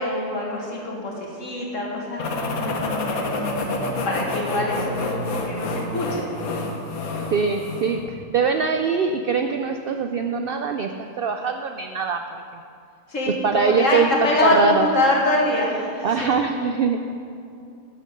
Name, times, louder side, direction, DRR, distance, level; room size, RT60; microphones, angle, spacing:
voice 1, 0.0-3.2 4.0-6.3 13.1-16.3, left 2 dB, 60° left, -2 dB, 2.1 m, -24 dB
sound 1, 2.2-8.0, left 2 dB, 75° left, 1.5 m, -28 dB
voice 2, 7.3-8.0 8.3-12.2 13.4-14.9 16.0-17.1, right 5 dB, 90° right, 6 dB, 0.5 m, -22 dB
11.0 x 6.7 x 6.6 m, 2.6 s
omnidirectional pair, 1.5 m